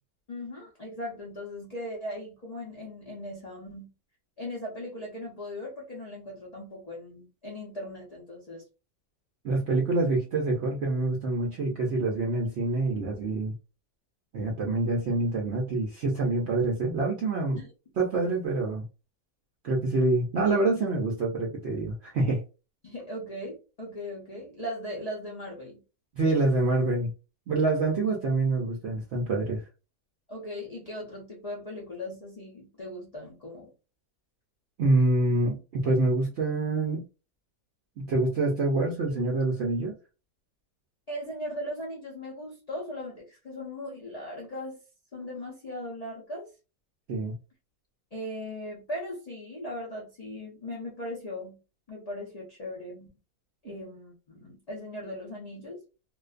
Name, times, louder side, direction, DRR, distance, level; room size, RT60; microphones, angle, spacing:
voice 1, 0.3-3.9 4.4-8.6 17.5-17.7 22.8-25.8 30.3-33.7 41.1-44.8 45.1-46.5 48.1-51.6 51.9-53.1 53.6-55.8, left 1 dB, 75° left, -4 dB, 0.3 m, -38 dB
voice 2, 9.4-13.5 14.3-17.6 18.0-18.8 19.6-22.4 26.1-27.1 27.5-29.6 34.8-37.0 38.0-39.9 47.1-47.3, right 2 dB, 65° right, -1 dB, 0.6 m, -26 dB
2.5 x 2.2 x 2.4 m, 0.32 s
omnidirectional pair, 1.7 m